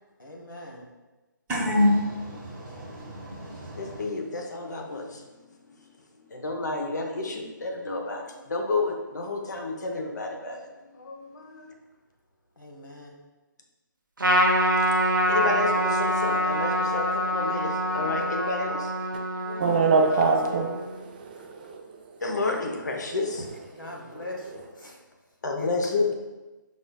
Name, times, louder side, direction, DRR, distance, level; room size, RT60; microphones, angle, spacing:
voice 1, 0.2-0.9 12.6-13.2 19.4-20.6 23.7-25.0 25.5-25.9, left 1 dB, 80° left, 1.1 m, -40 dB
voice 2, 1.5-4.0, left 1 dB, 10° right, 0.8 m, -27 dB
voice 3, 3.8-5.3 5.8-5.9 6.3-10.6 11.1-11.7 15.3-19.3 22.2-23.8 25.4-26.1, left 3 dB, 60° left, 0.8 m, -30 dB
Trumpet, 14.2-20.9, equal, 75° right, 0.7 m, -25 dB
voice 4, 19.6-21.9 23.8-24.2, right 4 dB, 25° right, 0.4 m, -25 dB
5.2 x 3.9 x 2.3 m
figure-of-eight pair, 145°, 11 cm